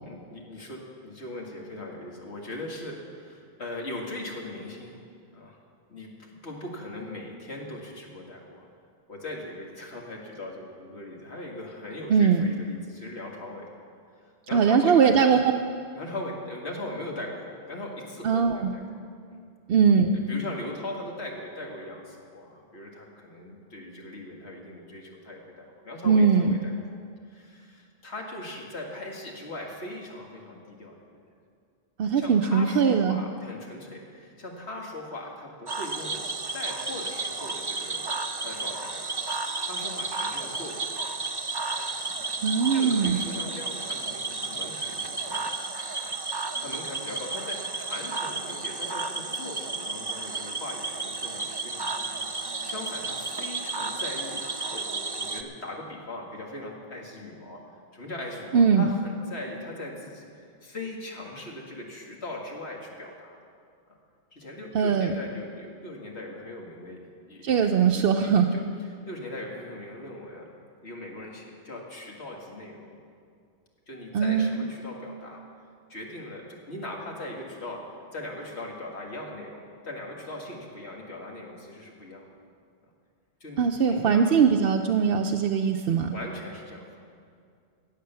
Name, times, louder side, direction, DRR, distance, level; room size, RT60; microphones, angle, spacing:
voice 1, 0.0-5.0 5.3-5.6 5.9-8.7 9.1-13.8 14.2-15.4 16.0-19.0 19.3-19.4 20.1-26.7 27.3-31.2 32.2-36.2 36.5-39.3 39.6-41.4 42.0-42.4 42.7-45.5 46.0-54.5 54.7-57.6 57.9-63.4 63.9-64.0 64.3-67.7 68.2-70.5 70.8-73.0 73.9-75.4 75.9-77.8 78.1-82.3 83.4-84.3 86.1-87.0, left 1 dB, 75° left, -1 dB, 2.2 m, -40 dB
voice 2, 12.1-12.5 14.5-15.4 18.2-18.7 19.7-20.1 26.0-26.6 32.0-33.2 42.4-43.2 58.5-58.9 64.7-65.1 67.4-68.5 74.1-74.7 83.6-86.2, right 6 dB, 70° right, 3 dB, 0.8 m, -21 dB
Cricket / Frog, 35.7-55.4, right 3 dB, 25° right, 0.6 m, -32 dB
16.0 x 8.3 x 6.8 m, 2.3 s
omnidirectional pair, 1.1 m